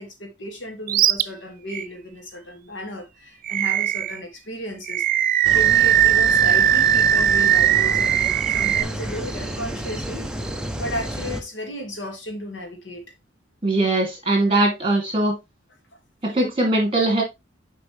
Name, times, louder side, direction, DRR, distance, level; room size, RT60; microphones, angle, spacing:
voice 1, 0.0-5.0 5.5-10.3 10.8-13.0, equal, 70° left, 2.0 m, -34 dB
Animal, 0.9-1.2 1.7-1.8 3.5-4.2 4.9-8.8, right 10 dB, 45° right, 0.3 m, -18 dB
sound 1, 5.4-11.4, equal, 5° right, 0.7 m, -31 dB
voice 2, 13.6-15.4 16.2-17.2, right 2 dB, 30° right, 2.7 m, -20 dB
6.8 x 5.0 x 3.2 m
head